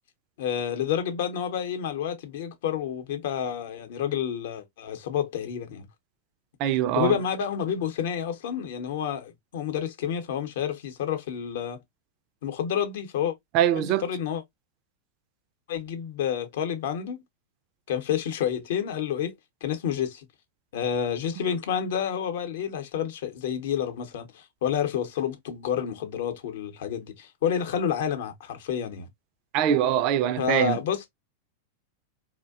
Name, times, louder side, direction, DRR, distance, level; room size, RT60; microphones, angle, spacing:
voice 1, 0.4-5.9 6.9-11.8 12.4-13.4 13.8-14.4 15.7-17.2 17.9-19.3 19.6-20.3 20.7-29.1 30.4-31.1, left 8 dB, 70° left, 0.7 m, -29 dB
voice 2, 6.6-7.2 13.5-14.1 29.5-30.8, right 10 dB, 50° right, 0.3 m, -23 dB
2.6 x 2.1 x 2.3 m
hypercardioid pair, 100°, 0 cm